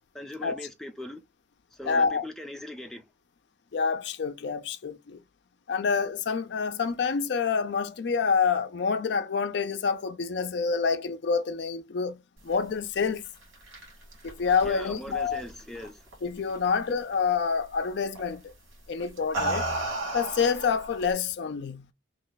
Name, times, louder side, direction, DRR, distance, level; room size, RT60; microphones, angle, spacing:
voice 1, 0.1-1.2 1.7-3.1 14.6-16.1, left 1 dB, ahead, 0.4 m, -40 dB
voice 2, 1.9-2.2 3.7-5.2 5.7-12.2 12.4-13.3 14.2-15.4 16.2-18.5 18.9-19.7 20.1-21.8, left 5 dB, 60° left, 0.4 m, -27 dB
sound 1, 13.2-16.1 16.5-16.9 18.2-18.4 19.0-21.1, right 2 dB, 85° right, 1.8 m, -34 dB
3.1 x 2.2 x 3.8 m
head